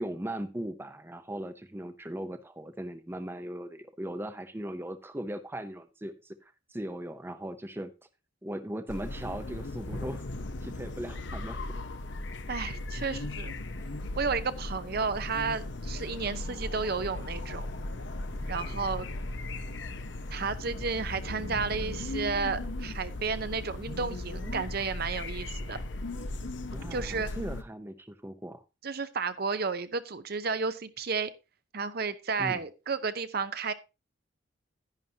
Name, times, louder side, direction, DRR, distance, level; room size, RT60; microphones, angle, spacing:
voice 1, 0.0-7.9 8.4-10.2 10.6-11.6 18.6-18.9 26.7-28.6 32.4-32.6, right 1 dB, 10° right, 10 dB, 0.7 m, -38 dB
sound 1, 8.9-27.6, left 2 dB, 65° left, 0.9 m, -37 dB
voice 2, 12.5-13.5 14.2-17.7 18.5-19.1 20.3-25.8 26.9-27.3 28.8-31.3 31.7-33.7, right 5 dB, 55° right, 12 dB, 0.8 m, -32 dB
11.0 x 10.5 x 2.8 m, 0.27 s
head